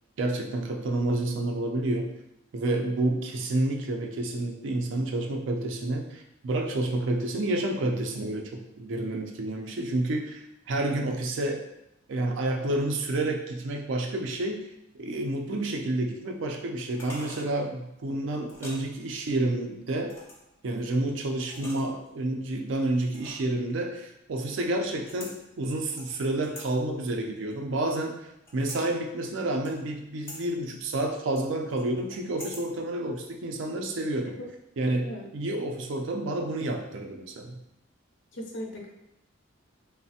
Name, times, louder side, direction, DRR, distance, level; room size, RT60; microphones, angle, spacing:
voice 1, 0.2-2.1 2.5-11.6 12.1-20.2 20.6-34.4 34.8-37.6, right 2 dB, 65° right, 2 dB, 0.4 m, -29 dB
sound 1, 16.9-17.5 18.5-18.8 20.1-20.5 21.4-22.1 23.1-23.6 25.0-25.4 26.0-26.7 27.2-28.1 28.5-28.8 29.6-30.0 30.3-30.4 31.4-32.7 33.0-33.1, equal, 10° left, 0.5 m, -44 dB
voice 2, 38.3-38.9, equal, 60° left, 0 dB, 0.5 m, -37 dB
3.1 x 2.0 x 2.7 m, 0.85 s
head